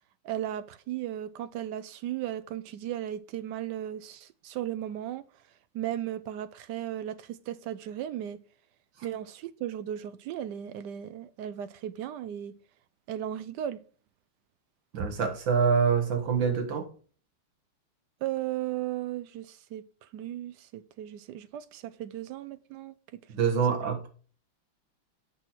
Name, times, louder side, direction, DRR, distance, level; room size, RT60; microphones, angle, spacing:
voice 1, 0.2-5.2 5.7-8.4 9.0-12.5 13.1-13.8 18.2-23.2 23.5-23.8, right 12 dB, 90° right, 0.9 m, -36 dB
voice 2, 14.9-16.9 23.3-24.1, right 6 dB, 60° right, 2.1 m, -25 dB
7.7 x 6.3 x 4.4 m
omnidirectional pair, 2.4 m